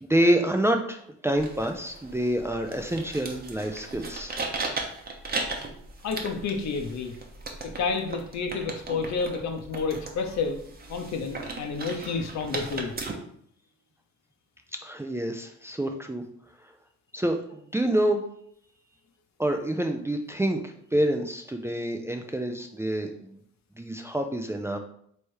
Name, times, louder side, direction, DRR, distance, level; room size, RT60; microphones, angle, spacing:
voice 1, 0.0-4.4 14.8-16.2 17.1-17.4 17.7-18.2 19.4-23.4 23.8-24.8, right 1 dB, 10° right, 4 dB, 0.4 m, -27 dB
sound 1, 1.3-13.1, right 3 dB, 30° right, 0.9 m, -37 dB
voice 2, 6.0-7.2 7.6-10.6 10.9-12.9, left 4 dB, 65° left, 5 dB, 0.8 m, -30 dB
3.3 x 3.2 x 4.5 m, 0.65 s
cardioid pair, 90°, 30 cm